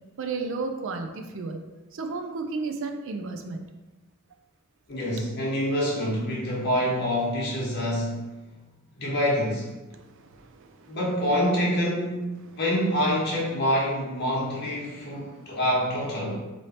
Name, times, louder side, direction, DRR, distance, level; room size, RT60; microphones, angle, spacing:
voice 1, 0.2-1.6 1.9-3.7 9.9-11.0 15.1-15.6, right 3 dB, 60° right, 5 dB, 0.4 m, -34 dB
voice 2, 4.9-8.5 8.9-9.7 10.9-16.4, equal, 50° left, -4 dB, 1.1 m, -26 dB
3.2 x 2.7 x 4.3 m, 1.1 s
head